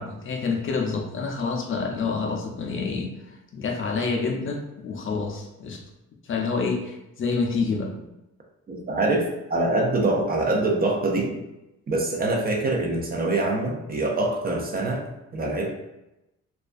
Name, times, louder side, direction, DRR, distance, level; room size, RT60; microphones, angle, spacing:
voice 1, 0.0-3.1 3.5-5.8 6.2-7.9, left 4 dB, 45° left, 1 dB, 0.5 m, -27 dB
voice 2, 8.7-11.4 11.9-15.7, right 2 dB, 30° right, 0 dB, 0.5 m, -25 dB
2.4 x 2.3 x 2.4 m, 0.92 s
cardioid pair, 90°, 30 cm